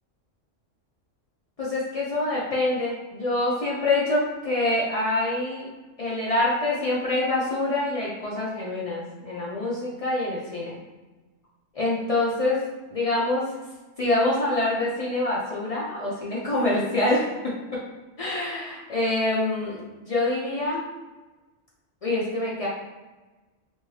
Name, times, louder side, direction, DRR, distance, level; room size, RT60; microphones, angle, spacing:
voice 1, 1.6-5.7 6.0-10.8 11.7-12.6 12.9-13.4 14.0-17.3 18.2-20.8 22.0-22.7, left 2 dB, 70° left, -6 dB, 0.3 m, -25 dB
2.7 x 2.6 x 3.1 m, 1.2 s
omnidirectional pair, 1.3 m